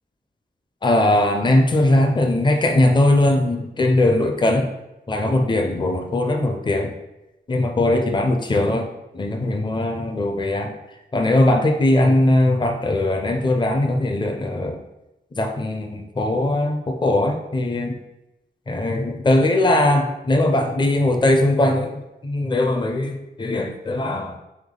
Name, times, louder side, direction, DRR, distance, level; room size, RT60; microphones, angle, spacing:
voice 1, 0.8-4.7 5.1-6.9 7.5-14.8 15.3-18.0 18.7-24.4, left 1 dB, 25° left, 4 dB, 0.5 m, -20 dB
3.5 x 3.4 x 3.7 m, 0.95 s
wide cardioid pair, 110°, 18 cm